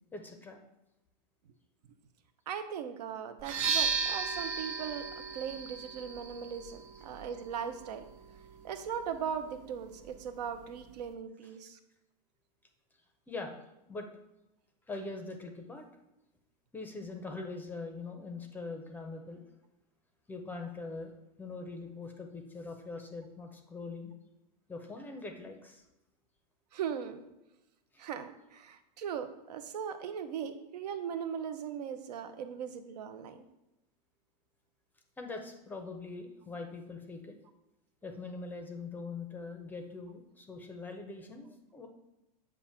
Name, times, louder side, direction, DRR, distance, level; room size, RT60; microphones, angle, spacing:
voice 1, 0.1-0.6 13.3-13.6 13.9-14.1 14.9-15.9 16.7-19.4 20.3-21.1 21.4-24.1 24.7-25.8 27.9-28.0 35.2-37.3 38.0-41.9, left 3 dB, 10° left, 4 dB, 0.5 m, -42 dB
voice 2, 2.5-5.1 5.3-8.0 8.6-11.8 26.7-27.2 28.0-33.4, right 8 dB, 85° right, 9 dB, 0.7 m, -39 dB
sound 1, 3.4-11.1, right 5 dB, 55° right, 0.9 m, -37 dB
7.2 x 2.5 x 5.6 m, 0.91 s
supercardioid pair, 150°, 20 cm